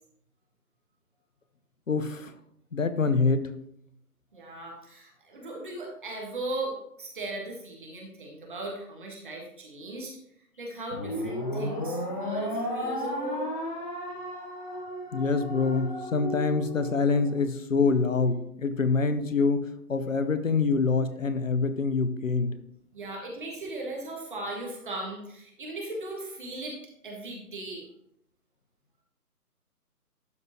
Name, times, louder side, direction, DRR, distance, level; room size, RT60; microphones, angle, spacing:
voice 1, 1.9-2.3 2.7-3.5 15.1-22.5, left 4 dB, 55° left, 11 dB, 0.9 m, -25 dB
voice 2, 4.3-10.2 10.6-13.5 16.2-16.3 22.9-26.8 27.0-27.9, right 2 dB, 30° right, -1 dB, 1.6 m, -37 dB
sound 1, 10.9-17.4, left 1 dB, 30° left, 1.2 m, -34 dB
12.0 x 5.0 x 3.0 m, 0.73 s
figure-of-eight pair, 145°, 47 cm